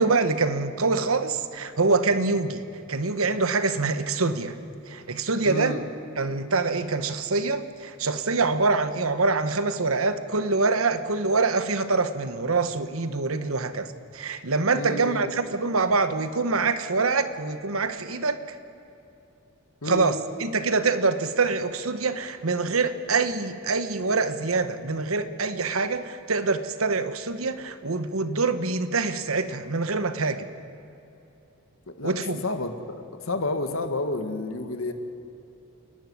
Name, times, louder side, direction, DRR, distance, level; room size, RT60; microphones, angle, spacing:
voice 1, 0.0-2.6 2.9-4.6 4.9-5.8 6.2-18.4 19.8-30.5 32.0-32.4, right 3 dB, 80° right, 11 dB, 1.2 m, -25 dB
voice 2, 5.5-5.8 14.7-15.3 19.8-20.1 31.9-33.0 33.3-34.9, left 2 dB, 75° left, 7 dB, 1.7 m, -30 dB
28.5 x 11.5 x 9.6 m, 2.8 s
head